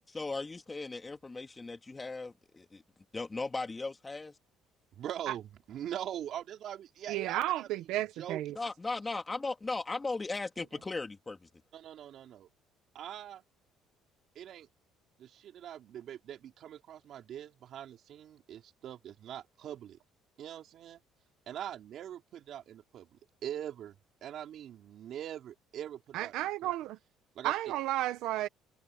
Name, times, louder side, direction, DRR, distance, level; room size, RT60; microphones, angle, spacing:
voice 1, 0.1-2.8 3.1-4.4 8.6-11.5, left 3 dB, 20° left, 2.6 m, -37 dB
voice 2, 4.9-7.7 8.2-8.4 11.7-12.5 12.9-13.4 14.4-14.7 15.2-20.0 20.4-21.0 21.5-26.7 27.3-27.5, right 10 dB, 55° right, 3.8 m, -42 dB
voice 3, 7.1-8.5 26.1-27.0 27.4-28.5, right 14 dB, 80° right, 1.2 m, -32 dB
cardioid pair, 115°, 0 cm